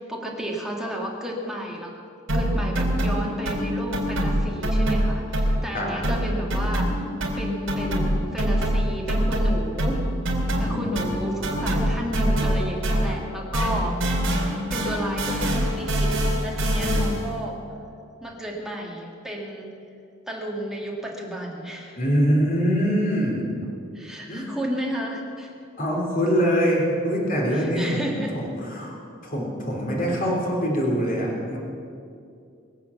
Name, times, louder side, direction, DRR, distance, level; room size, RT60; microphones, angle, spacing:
voice 1, 0.0-1.9 2.3-6.9 7.4-10.0 10.3-14.0 14.7-16.1 16.4-17.6 18.2-19.7 20.3-22.0 23.9-25.5 27.5-28.4, equal, 5° right, -2 dB, 2.1 m, -32 dB
sound 1, 2.3-5.8 6.0-13.3 13.5-17.3, equal, 70° right, 3.6 m, -24 dB
voice 2, 10.7-11.2 16.8-17.1 22.0-23.4 24.3-24.5 25.8-29.0 29.2-31.6, equal, 45° left, -2 dB, 3.4 m, -24 dB
23.0 x 8.3 x 7.1 m, 2.5 s
head